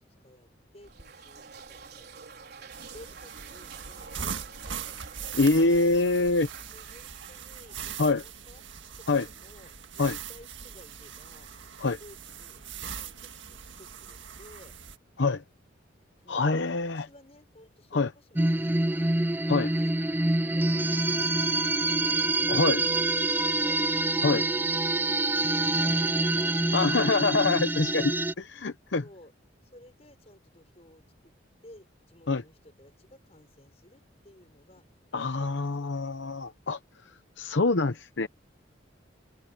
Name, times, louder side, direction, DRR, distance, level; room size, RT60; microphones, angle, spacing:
voice 1, 0.2-5.0 5.6-5.9 6.7-8.6 9.0-11.5 11.8-14.8 16.2-22.1 22.4-27.2 27.8-28.1 28.9-29.3 29.6-31.4 31.6-34.9 35.2-36.0 37.0-37.3, left 1 dB, 30° left, 6.3 m, -55 dB
sound 1, 0.8-8.4, right 5 dB, 55° right, 4.9 m, -49 dB
sound 2, 2.7-15.0, right 7 dB, 75° right, 1.7 m, -41 dB
voice 2, 5.4-6.5 8.0-8.2 9.1-9.2 10.0-10.1 11.8-12.0 15.2-15.4 16.3-17.1 17.9-18.1 19.5-19.7 22.5-22.8 24.2-24.4 26.7-28.1 28.4-29.0 32.3-32.4 35.1-36.8 37.4-38.3, left 3 dB, 65° left, 0.8 m, -25 dB
sound 3, 18.4-28.3, right 2 dB, 10° right, 0.4 m, -26 dB
head